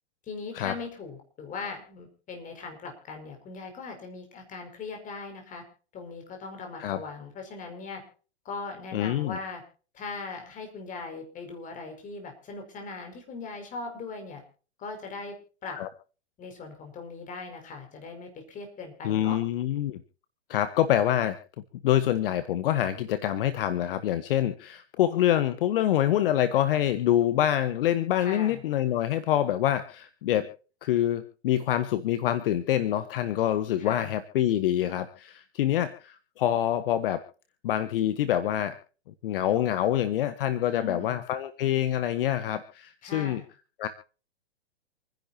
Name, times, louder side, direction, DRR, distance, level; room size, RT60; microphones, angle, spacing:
voice 1, 0.3-5.6 5.9-8.0 8.5-9.6 9.9-14.4 14.8-15.4 15.6-15.8 16.4-19.4 28.2-28.6 33.8-34.1 40.7-41.2 43.0-43.5, left 4 dB, 25° left, 4 dB, 5.5 m, -39 dB
voice 2, 8.9-9.4 15.8-15.9 19.0-20.0 20.5-21.4 21.8-30.5 30.8-37.2 37.6-38.8 39.2-43.4 43.8-43.9, left 11 dB, 55° left, 11 dB, 1.4 m, -26 dB
28.0 x 10.5 x 2.8 m, 0.39 s
hypercardioid pair, 130°, 33 cm